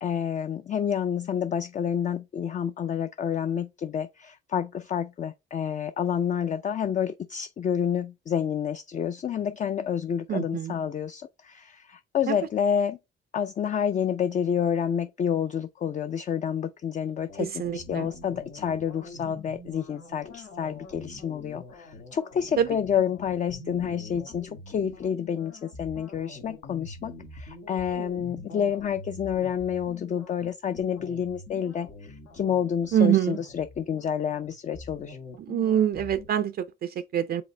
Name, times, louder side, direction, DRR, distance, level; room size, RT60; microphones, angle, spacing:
voice 1, 0.0-13.0 13.3-35.2, left 8 dB, 40° left, 0.4 m, -29 dB
voice 2, 10.3-10.7 12.3-12.4 17.6-18.1 22.6-22.7 32.9-33.4 35.5-37.4, right 10 dB, 50° right, 0.4 m, -25 dB
sound 1, 17.3-36.3, left 3 dB, 90° left, 1.4 m, -45 dB
5.0 x 3.1 x 3.2 m
cardioid pair, 90°, 20 cm